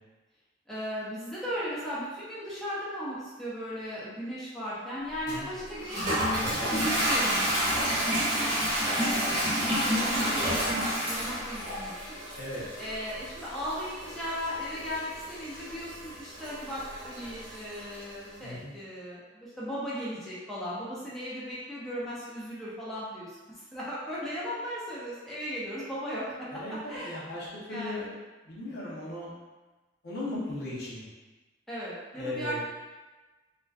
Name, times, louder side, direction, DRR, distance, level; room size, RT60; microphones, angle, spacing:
voice 1, 0.7-7.7 8.0-8.3 8.8-12.2 12.8-26.5 26.9-27.2 27.7-28.1 31.7-32.6, equal, ahead, -9 dB, 0.4 m, -37 dB
Toilet flush, 5.3-18.1, equal, 40° right, 0.9 m, -30 dB
voice 2, 18.4-18.7 26.5-28.1 28.4-29.3 30.0-31.0 32.1-32.6, left 1 dB, 55° left, -6 dB, 0.7 m, -37 dB
2.5 x 2.2 x 2.3 m, 1.2 s
head